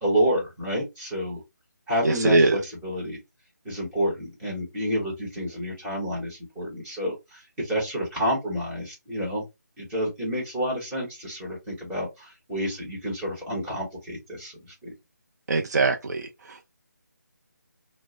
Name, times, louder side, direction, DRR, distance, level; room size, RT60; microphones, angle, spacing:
voice 1, 0.0-1.4 1.9-3.2 3.6-9.4 9.8-14.5 14.8-14.9, equal, 10° right, 0.9 m, -29 dB
voice 2, 2.0-2.6 15.5-16.7, right 2 dB, 60° right, 0.4 m, -22 dB
2.1 x 2.0 x 2.9 m
figure-of-eight pair, 160°, 10 cm